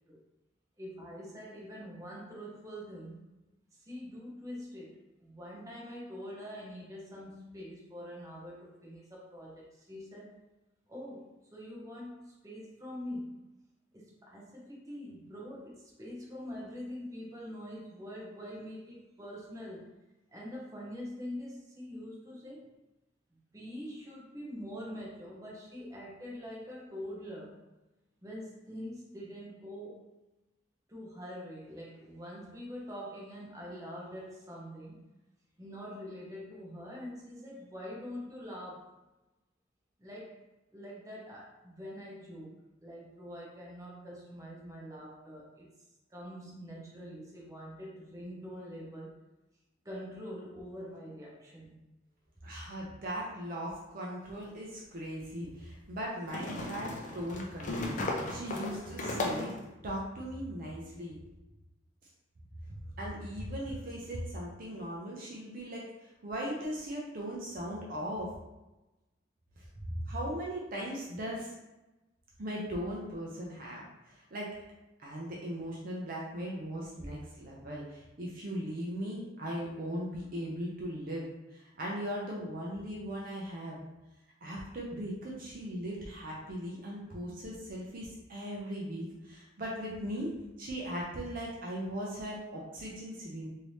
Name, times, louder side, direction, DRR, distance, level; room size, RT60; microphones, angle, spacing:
voice 1, 0.8-3.2 3.7-10.4 10.9-13.4 13.9-19.9 20.3-22.7 23.5-27.6 28.2-30.1 30.9-35.0 35.6-38.9 40.0-40.4 40.7-42.5 42.8-45.7 46.1-49.1 49.8-51.8, equal, 15° right, -4 dB, 0.8 m, -44 dB
voice 2, 52.4-59.6 59.8-61.2 63.0-68.3 69.6-71.5 72.4-74.5 75.0-83.8 84.4-90.3 90.6-93.5, equal, 45° right, -3 dB, 0.5 m, -38 dB
sound 1, 54.3-54.4 56.3-59.6, left 2 dB, 40° left, 0.4 m, -36 dB
3.2 x 2.7 x 3.1 m, 1.0 s
head